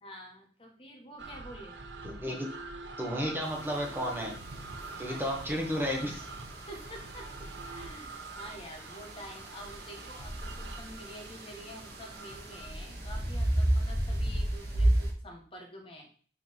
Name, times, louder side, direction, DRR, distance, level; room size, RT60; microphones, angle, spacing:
voice 1, 0.0-1.8 5.0-5.2 6.7-16.1, equal, 30° left, 1 dB, 1.4 m, -48 dB
sound 1, 1.2-12.7, right 3 dB, 80° right, 0.9 m, -45 dB
voice 2, 2.0-2.5 3.0-4.4 5.0-6.3, equal, 10° right, 0 dB, 1.5 m, -33 dB
sound 2, 3.4-15.1, right 1 dB, 55° right, 2.0 m, -34 dB
7.4 x 6.2 x 3.6 m, 0.43 s
head